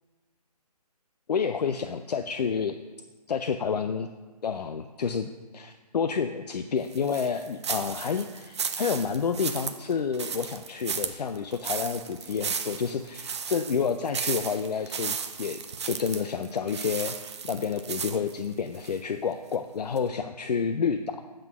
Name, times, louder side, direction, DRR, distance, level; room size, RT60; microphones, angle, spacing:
voice 1, 1.3-2.7 3.3-4.1 4.4-5.3 5.5-17.2 17.4-21.2, left 6 dB, 80° left, 8 dB, 0.4 m, -29 dB
sound 1, 6.9-19.0 19.4-19.5 20.0-20.1, right 6 dB, 45° right, 0.5 m, -34 dB
7.7 x 3.7 x 6.0 m, 1.3 s
figure-of-eight pair, 155°, 20 cm